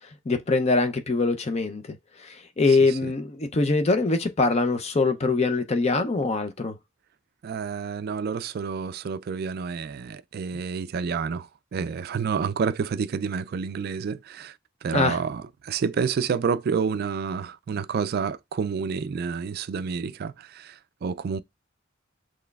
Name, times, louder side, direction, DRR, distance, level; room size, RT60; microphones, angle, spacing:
voice 1, 0.3-6.8 14.9-15.2, left 3 dB, 30° left, 0.5 m, -23 dB
voice 2, 2.7-3.1 7.4-21.4, right 6 dB, 50° right, 0.3 m, -29 dB
6.0 x 3.1 x 2.3 m
head